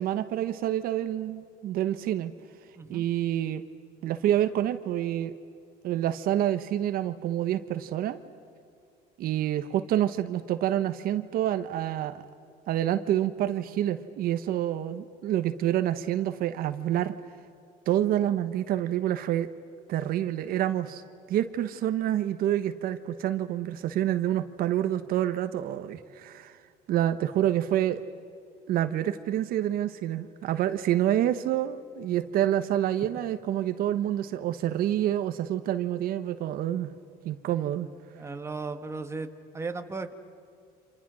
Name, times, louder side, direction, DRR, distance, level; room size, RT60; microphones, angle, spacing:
voice 1, 0.0-2.3 2.9-3.6 4.0-5.3 5.8-8.2 9.2-12.2 12.7-17.1 17.9-19.5 19.9-21.0 21.3-26.6 26.9-28.0 28.7-36.9 37.2-37.9, right 12 dB, 65° right, 10 dB, 1.2 m, -27 dB
voice 2, 38.1-39.3 39.5-40.1, right 4 dB, 15° right, 7 dB, 1.5 m, -35 dB
29.5 x 27.0 x 6.3 m, 2.5 s
cardioid pair, 125°, 16 cm